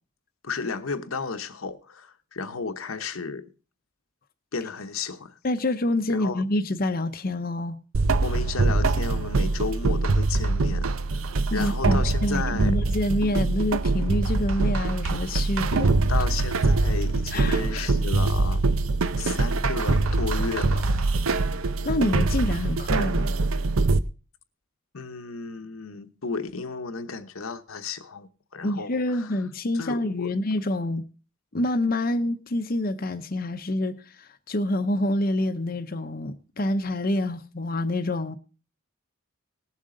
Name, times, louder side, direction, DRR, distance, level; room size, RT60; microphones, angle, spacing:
voice 1, 0.4-3.5 4.5-5.3 6.1-6.4 8.2-10.9 11.5-12.8 16.1-18.6 19.2-20.9 24.9-28.3 28.5-29.3 29.7-30.3, left 4 dB, 80° left, 1.0 m, -33 dB
voice 2, 5.4-7.8 11.5-16.3 17.3-17.9 21.8-23.3 28.6-31.0 31.5-38.4, left 1 dB, 45° left, 0.7 m, -27 dB
sound 1, 7.9-24.0, right 3 dB, 80° right, 0.7 m, -23 dB
19.0 x 7.4 x 3.8 m
head